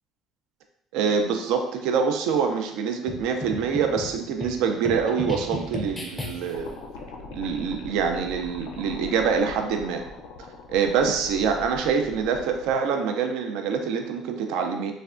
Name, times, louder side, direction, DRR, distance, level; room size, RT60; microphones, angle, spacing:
voice 1, 0.9-6.7 7.3-10.0 10.7-14.9, right 6 dB, 75° right, 5 dB, 0.4 m, -25 dB
sound 1, 3.1-6.7, left 2 dB, 10° left, 0.4 m, -35 dB
sound 2, 6.5-12.7, left 3 dB, 75° left, 0.4 m, -41 dB
3.3 x 2.1 x 2.4 m, 0.77 s
cardioid pair, 160°, 0 cm